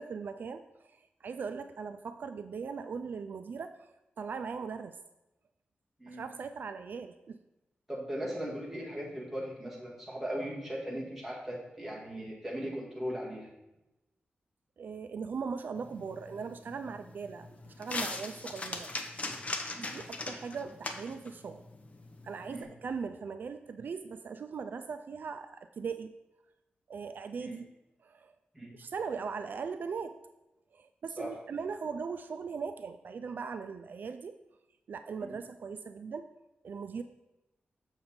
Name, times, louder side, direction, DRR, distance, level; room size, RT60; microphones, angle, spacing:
voice 1, 0.0-5.0 6.1-7.4 14.8-18.9 19.8-21.6 22.2-26.1 26.9-27.6 28.0-28.3 28.8-30.2 30.7-34.4 34.9-36.3 36.6-37.0, right 5 dB, 60° right, 9 dB, 0.3 m, -39 dB
voice 2, 7.9-13.5 19.7-19.9 22.5-22.7 27.4-27.6 28.5-28.7 31.2-31.4, equal, 5° right, -4 dB, 1.8 m, -38 dB
sound 1, 15.8-22.6, left 3 dB, 40° left, 0.8 m, -41 dB
6.8 x 6.6 x 4.3 m, 0.96 s
wide cardioid pair, 155°, 4 cm